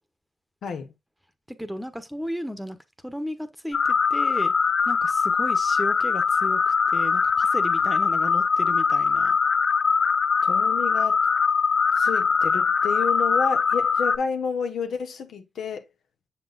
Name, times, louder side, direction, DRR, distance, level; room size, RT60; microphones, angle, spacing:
voice 1, 0.6-0.9 10.4-11.2 12.0-15.8, left 5 dB, 80° left, 0.9 m, -30 dB
voice 2, 1.5-2.8 3.0-4.5 4.9-9.4, equal, ahead, 1.0 m, -34 dB
sound 1, 3.7-14.2, left 5 dB, 60° left, 0.5 m, -22 dB
6.9 x 6.1 x 2.4 m
cardioid pair, 65°, 0 cm